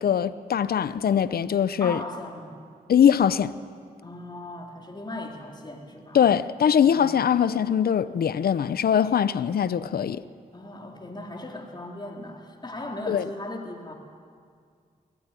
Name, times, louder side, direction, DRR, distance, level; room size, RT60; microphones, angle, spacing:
voice 1, 0.0-2.0 2.9-3.5 6.1-10.2 13.1-13.2, left 8 dB, 75° left, 0.7 m, -22 dB
voice 2, 1.8-2.6 4.0-6.2 6.8-7.4 10.5-13.9, left 1 dB, 25° left, 4.0 m, -38 dB
22.0 x 18.5 x 9.9 m
cardioid pair, 50°, 16 cm